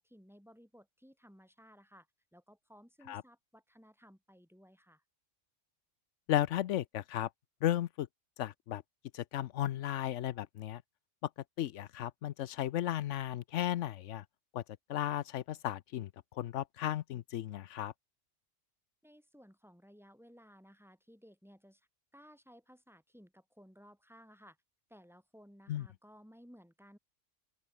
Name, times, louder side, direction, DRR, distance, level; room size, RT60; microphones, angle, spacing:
voice 1, 0.0-2.1 2.3-5.0 19.0-24.6 24.9-27.0, equal, ahead, 6.6 m, -59 dB
voice 2, 6.3-7.3 7.6-8.1 8.4-8.8 9.1-10.8 11.2-11.3 11.6-14.2 14.5-14.6 14.9-17.9 25.7-25.8, left 12 dB, 80° left, 1.0 m, -35 dB
open air
omnidirectional pair, 1.2 m